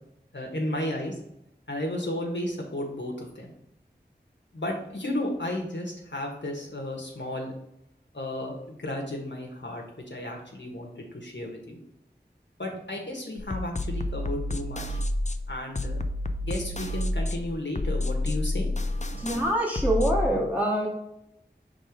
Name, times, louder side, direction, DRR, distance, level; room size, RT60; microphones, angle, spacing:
voice 1, 0.3-1.2 1.7-3.5 4.5-7.5 8.1-11.8 12.6-15.0 15.5-16.0 16.4-18.7, left 1 dB, 85° left, 0 dB, 1.3 m, -33 dB
sound 1, 13.4-20.3, left 1 dB, 40° left, 0.5 m, -29 dB
voice 2, 19.2-20.9, right 1 dB, 10° right, -4 dB, 1.9 m, -25 dB
5.4 x 3.8 x 5.1 m, 0.80 s
wide cardioid pair, 40°, 18 cm